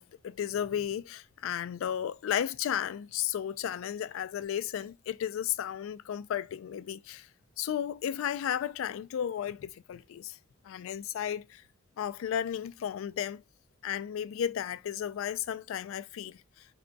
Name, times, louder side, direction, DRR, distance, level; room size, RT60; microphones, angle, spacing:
voice 1, 0.0-7.3 7.6-10.4 10.6-11.6 12.0-13.4 13.8-16.7, left 9 dB, 75° left, 0.3 m, -34 dB
3.4 x 2.2 x 3.9 m
head